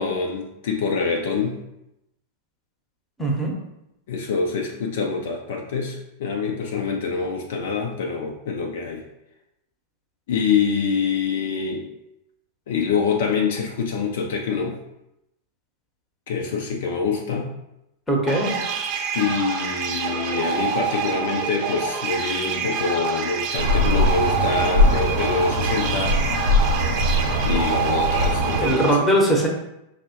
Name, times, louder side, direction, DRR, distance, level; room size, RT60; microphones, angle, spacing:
voice 1, 0.0-1.6 4.1-9.0 10.3-11.9 12.7-14.8 16.3-17.5 19.1-26.2 27.4-29.1, left 5 dB, 55° left, 2 dB, 0.4 m, -25 dB
voice 2, 3.2-3.6 18.1-18.6 28.6-29.5, right 1 dB, 10° left, 1 dB, 0.8 m, -20 dB
sound 1, 18.3-28.9, right 7 dB, 40° right, 0.4 m, -27 dB
sound 2, 23.6-28.7, left 1 dB, 90° right, 0.8 m, -21 dB
5.2 x 2.0 x 2.8 m, 0.87 s
figure-of-eight pair, 90°, 0 cm